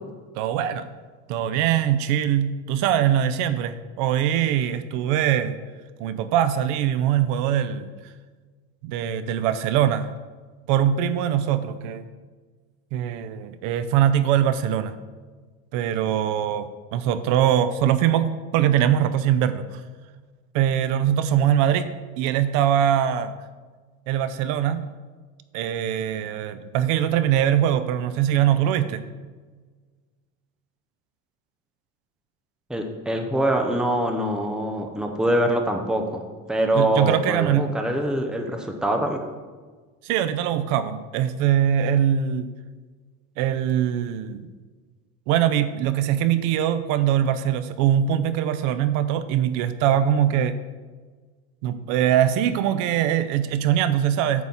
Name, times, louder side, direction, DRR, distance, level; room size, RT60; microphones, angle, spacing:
voice 1, 0.4-0.9 1.3-5.6 6.0-7.9 8.8-10.1 10.7-12.0 12.9-14.9 15.7-19.8 20.5-21.9 22.2-23.3 24.1-24.9 25.5-29.0 36.7-37.8 40.0-42.5 43.4-44.5 45.3-50.6 51.6-54.4, right 10 dB, 60° right, 12 dB, 0.6 m, -22 dB
voice 2, 32.7-36.2 36.5-39.2, right 1 dB, ahead, 4 dB, 0.7 m, -24 dB
9.3 x 4.0 x 7.2 m, 1.4 s
cardioid pair, 155°, 34 cm